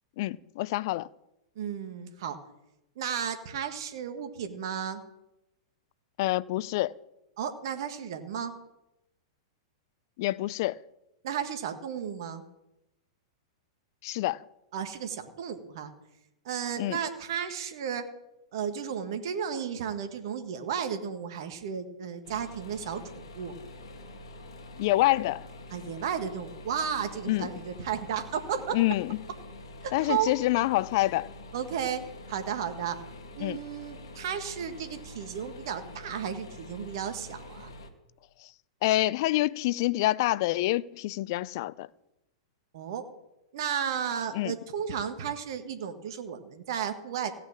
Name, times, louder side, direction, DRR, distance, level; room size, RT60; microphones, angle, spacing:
voice 1, 0.2-1.1 6.2-6.9 10.2-10.8 14.0-14.4 16.8-17.0 24.8-25.5 27.3-27.5 28.7-29.2 29.9-31.3 33.4-33.6 38.8-41.9 44.3-44.5, left 17 dB, 55° left, 0.4 m, -27 dB
voice 2, 1.5-2.4 3.0-5.0 7.4-8.5 11.2-12.4 14.7-15.9 16.4-18.0 18.5-23.5 25.7-28.8 29.8-30.3 31.5-32.0 32.3-33.0 33.3-37.7 42.7-43.0 43.5-47.4, right 8 dB, 60° right, 1.6 m, -33 dB
sound 1, 22.2-37.9, left 1 dB, 75° left, 1.8 m, -46 dB
16.0 x 5.8 x 8.7 m
hypercardioid pair, 105°, 3 cm